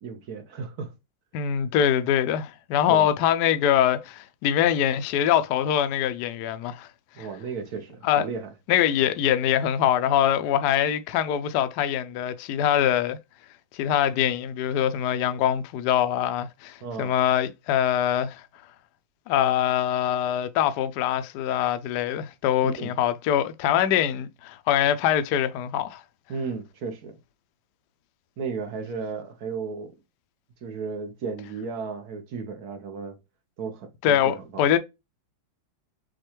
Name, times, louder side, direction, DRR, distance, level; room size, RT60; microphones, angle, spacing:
voice 1, 0.0-0.9 2.9-3.2 7.1-8.5 16.8-17.1 22.6-22.9 26.3-27.2 28.4-29.9 30.6-33.2 33.6-34.6, right 5 dB, 60° right, 1.2 m, -34 dB
voice 2, 1.3-6.9 7.2-7.3 8.0-8.2 8.7-13.2 13.7-18.4 19.3-26.0 34.0-34.8, left 10 dB, 75° left, 1.0 m, -23 dB
6.3 x 2.3 x 2.9 m
omnidirectional pair, 2.1 m